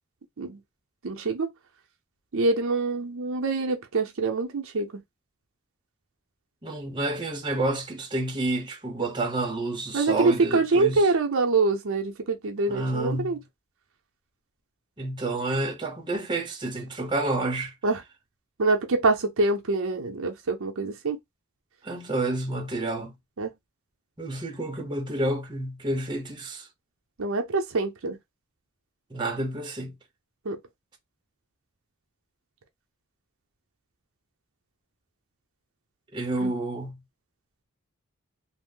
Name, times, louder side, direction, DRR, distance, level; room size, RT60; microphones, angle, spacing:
voice 1, 1.0-1.5 2.3-4.9 9.9-13.4 17.8-18.0 18.6-21.2 23.4-23.5 27.2-28.2 30.4-30.6 36.4-36.5, right 3 dB, 65° right, 0.6 m, -25 dB
voice 2, 6.6-11.1 12.7-13.4 15.0-17.7 21.8-23.1 24.2-26.7 29.1-29.9 36.1-37.0, right 2 dB, 20° right, 0.7 m, -29 dB
2.6 x 2.0 x 3.7 m
head